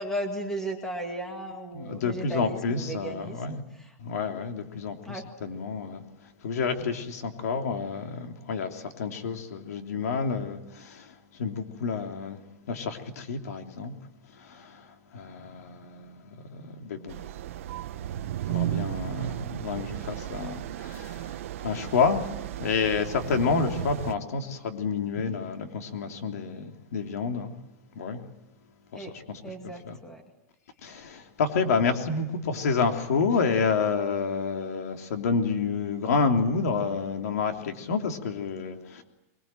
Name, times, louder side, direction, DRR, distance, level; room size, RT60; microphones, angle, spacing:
voice 1, 0.0-4.0 5.0-5.3 19.2-19.4 28.9-29.1 29.4-30.2, right 1 dB, 5° left, 4 dB, 2.3 m, -36 dB
voice 2, 1.7-3.6 4.0-6.0 6.4-12.4 12.7-13.9 14.3-14.9 15.1-17.2 18.5-27.5 27.9-28.2 28.9-29.9 30.8-39.0, left 5 dB, 85° left, 4 dB, 3.2 m, -29 dB
sound 1, 17.1-24.1, right 13 dB, 60° right, 0.9 m, -34 dB
23.5 x 22.0 x 9.1 m, 0.97 s
supercardioid pair, 180°, 8 cm